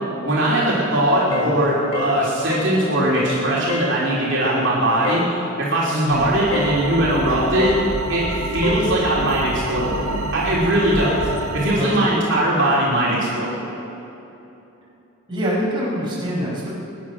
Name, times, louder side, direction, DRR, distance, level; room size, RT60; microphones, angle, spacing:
voice 1, 0.2-7.8 8.1-8.3 8.5-10.1 10.3-13.6, right 1 dB, 60° right, -6 dB, 3.1 m, -20 dB
sound 1, 1.3-1.6 1.9-2.2 2.5-2.7 3.1-3.4 3.7-3.9 5.0-5.3 6.5-6.8 7.6-7.8 8.6-8.9, left 5 dB, 80° left, 1.4 m, -27 dB
voice 2, 1.3-1.8 5.9-6.3 11.7-12.1 15.3-16.7, equal, 20° right, -6 dB, 4.7 m, -25 dB
sound 2, 6.1-11.8, right 2 dB, 90° right, 1.4 m, -27 dB
22.5 x 10.0 x 6.0 m, 3.0 s
head